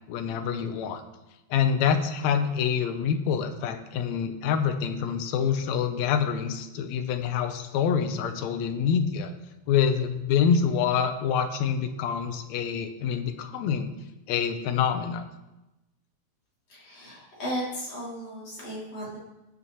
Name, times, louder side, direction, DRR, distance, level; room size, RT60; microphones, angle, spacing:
voice 1, 0.1-1.0 1.5-9.3 9.7-14.0 14.3-15.2, left 7 dB, 75° left, 7 dB, 2.0 m, -26 dB
voice 2, 16.7-19.2, equal, 60° left, -7 dB, 3.9 m, -35 dB
18.5 x 7.0 x 3.0 m, 0.98 s
omnidirectional pair, 3.4 m